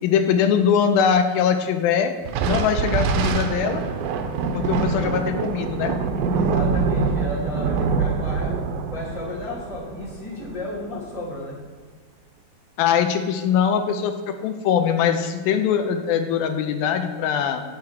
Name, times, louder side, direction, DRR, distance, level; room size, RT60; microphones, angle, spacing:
voice 1, 0.0-2.1 2.4-3.8 4.5-6.0 12.8-17.6, left 7 dB, 85° left, 7 dB, 2.4 m, -22 dB
Thunder, 2.3-11.0, right 5 dB, 85° right, 2.5 m, -25 dB
voice 2, 6.3-8.5 8.9-11.6, left 1 dB, ahead, -8 dB, 1.8 m, -33 dB
9.1 x 7.2 x 4.5 m, 1.5 s
omnidirectional pair, 4.2 m